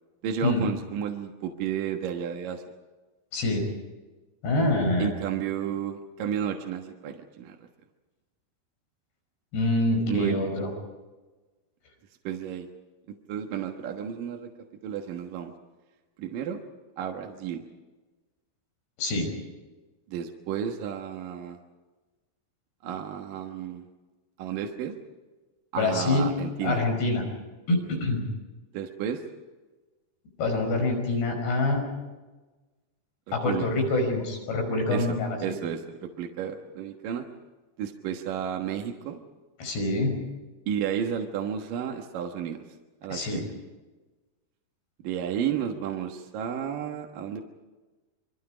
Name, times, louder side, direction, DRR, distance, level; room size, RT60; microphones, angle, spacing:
voice 1, 0.2-2.6 5.0-7.6 10.1-10.4 12.2-12.7 13.3-14.5 14.8-15.5 16.2-16.6 17.0-17.7 20.1-21.6 22.8-23.8 24.4-25.0 25.7-26.8 28.7-29.2 33.3-33.6 34.9-37.3 37.8-39.2 40.7-42.6 43.0-43.4 45.0-47.4, right 8 dB, 65° right, 3 dB, 2.8 m, -32 dB
voice 2, 3.3-3.7 4.4-5.1 9.5-10.7 19.0-19.3 25.8-26.3 26.6-27.2 27.7-28.3 30.4-31.8 33.3-35.5 39.6-40.2 43.1-43.4, left 2 dB, 80° left, 3 dB, 7.4 m, -25 dB
27.0 x 23.5 x 5.1 m, 1.2 s
omnidirectional pair, 4.6 m